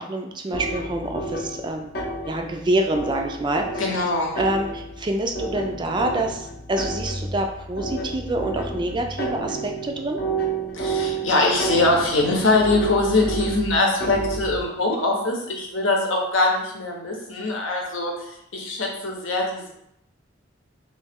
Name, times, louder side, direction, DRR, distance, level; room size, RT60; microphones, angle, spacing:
voice 1, 0.0-1.9 2.3-3.8 4.4-10.2, right 1 dB, 25° right, 4 dB, 0.3 m, -26 dB
sound 1, 0.5-14.7, right 2 dB, 50° left, 0.6 m, -31 dB
voice 2, 3.8-4.4 10.7-18.1 18.5-19.7, left 2 dB, 85° left, 0 dB, 0.8 m, -22 dB
3.1 x 2.8 x 3.5 m, 0.78 s
head